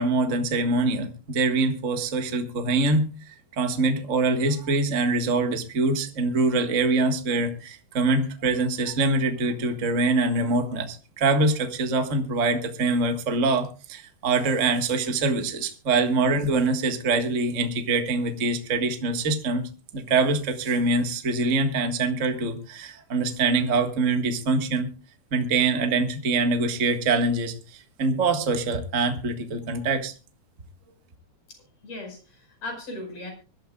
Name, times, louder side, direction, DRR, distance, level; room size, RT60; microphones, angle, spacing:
voice 1, 0.0-19.6 19.9-24.9 25.3-30.1, right 3 dB, 35° right, 5 dB, 1.4 m, -24 dB
voice 2, 31.8-33.3, left 2 dB, 60° left, 4 dB, 6.5 m, -37 dB
24.0 x 13.0 x 2.4 m, 0.32 s
omnidirectional pair, 3.5 m